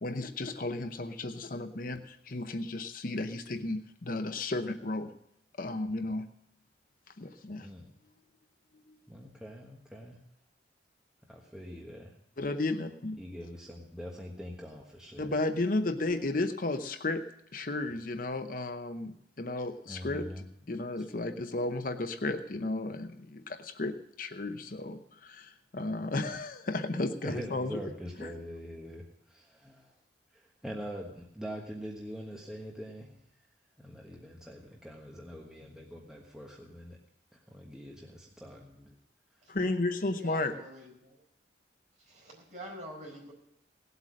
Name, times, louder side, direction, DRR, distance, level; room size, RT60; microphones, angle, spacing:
voice 1, 0.0-5.1 5.6-6.3 7.2-7.7 8.9-9.0 12.4-13.2 15.2-17.2 17.5-27.8 28.2-28.3 39.5-40.5, left 2 dB, 45° left, 8 dB, 0.8 m, -33 dB
voice 2, 9.1-10.2 11.3-12.1 13.2-15.3 19.9-20.4 21.0-21.1 27.2-29.9 30.3-33.2 33.8-37.0 37.3-39.0, equal, 5° right, -2 dB, 1.3 m, -44 dB
voice 3, 40.0-41.2 42.0-43.3, right 1 dB, 40° right, -1 dB, 4.7 m, -46 dB
17.5 x 8.2 x 6.3 m, 0.75 s
head